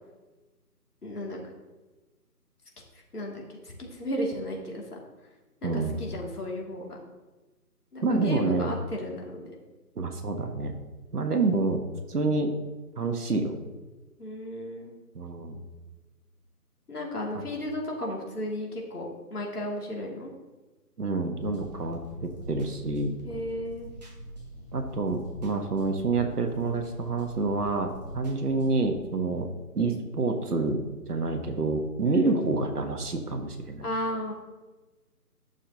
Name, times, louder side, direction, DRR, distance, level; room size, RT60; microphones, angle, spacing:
voice 1, 1.0-1.4 3.1-4.8 5.6-7.0 7.9-9.5 14.2-14.9 16.9-20.3 23.2-23.9 32.0-32.3 33.8-34.3, left 1 dB, 70° left, -2 dB, 2.6 m, -34 dB
voice 2, 5.6-6.0 8.0-8.7 10.0-10.7 11.1-12.5 13.0-13.5 15.1-15.6 17.3-17.4 21.0-23.1 24.7-29.5 29.7-30.8 31.1-33.9, right 3 dB, 70° right, 5 dB, 1.4 m, -28 dB
sound 1, 21.4-28.8, equal, 25° right, 1.2 m, -44 dB
11.5 x 6.8 x 2.9 m, 1.2 s
figure-of-eight pair, 160°, 48 cm